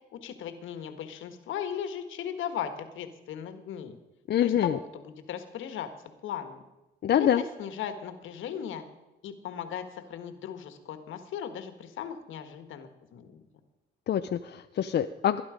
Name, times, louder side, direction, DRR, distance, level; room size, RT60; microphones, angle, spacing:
voice 1, 0.1-4.0 4.4-5.9 6.2-6.6 7.2-8.8 9.2-13.4, left 9 dB, 80° left, 9 dB, 1.7 m, -37 dB
voice 2, 4.3-4.8 7.0-7.4 14.1-15.4, left 10 dB, 55° left, 8 dB, 0.6 m, -25 dB
19.5 x 11.0 x 5.1 m, 1.0 s
cardioid pair, 90°, 20 cm